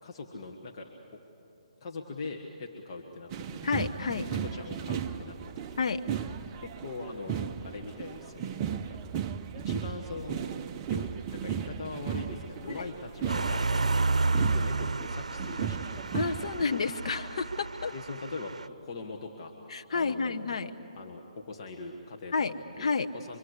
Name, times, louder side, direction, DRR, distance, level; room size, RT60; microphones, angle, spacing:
voice 1, 0.0-1.2 1.8-3.5 4.1-6.2 6.6-9.0 9.5-10.5 10.9-16.0 17.9-18.6 18.8-19.6 19.9-20.6 20.9-23.4, left 3 dB, 40° left, 1 dB, 1.8 m, -42 dB
sound 1, 3.3-16.6, right 8 dB, 25° right, 0.7 m, -36 dB
voice 2, 3.6-4.3 5.8-6.0 12.7-12.9 16.1-17.9 19.7-20.7 22.3-23.1, left 4 dB, 60° left, 7 dB, 1.0 m, -30 dB
sound 2, 13.3-18.7, right 3 dB, 85° right, 0.7 m, -31 dB
25.0 x 25.0 x 8.3 m, 2.9 s
hypercardioid pair, 150°, 4 cm